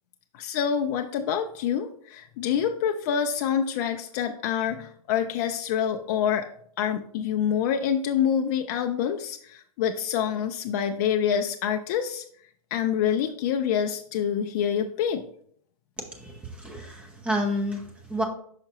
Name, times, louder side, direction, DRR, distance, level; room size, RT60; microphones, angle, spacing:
voice 1, 0.3-6.5 6.8-12.2 12.7-15.2, left 8 dB, 30° left, 5 dB, 0.4 m, -26 dB
voice 2, 16.0-18.2, equal, 5° right, 1 dB, 0.8 m, -30 dB
5.7 x 5.6 x 2.9 m, 0.63 s
hypercardioid pair, 145°, 19 cm